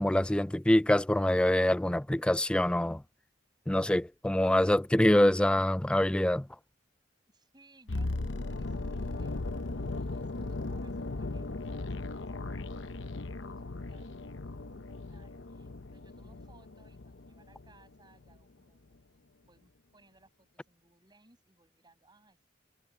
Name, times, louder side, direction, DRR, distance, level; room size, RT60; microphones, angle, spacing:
voice 1, 0.0-3.0 3.7-6.5, left 1 dB, 5° left, 0.3 m, -25 dB
voice 2, 7.3-9.5 9.8-22.4, right 2 dB, 25° right, 7.8 m, -65 dB
sound 1, 7.9-17.9 18.1-18.4, left 2 dB, 85° left, 0.9 m, -37 dB
head